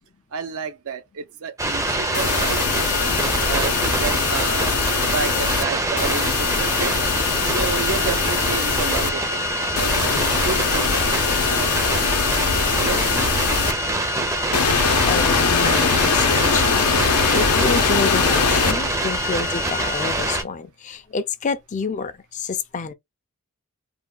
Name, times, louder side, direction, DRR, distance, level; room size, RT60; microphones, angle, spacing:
voice 1, 0.3-3.2 3.5-4.7 5.1-7.0 7.4-11.1 11.5-12.1 12.4-13.2, right 6 dB, 70° right, 0.5 m, -31 dB
sound 1, 1.6-20.4, right 1 dB, 15° right, 0.5 m, -24 dB
sound 2, 2.1-5.6 6.0-9.1 9.8-13.7 14.5-18.7, left 5 dB, 80° left, 0.7 m, -22 dB
voice 2, 15.0-16.7 16.9-22.9, left 4 dB, 35° left, 0.4 m, -28 dB
3.4 x 2.2 x 2.3 m
head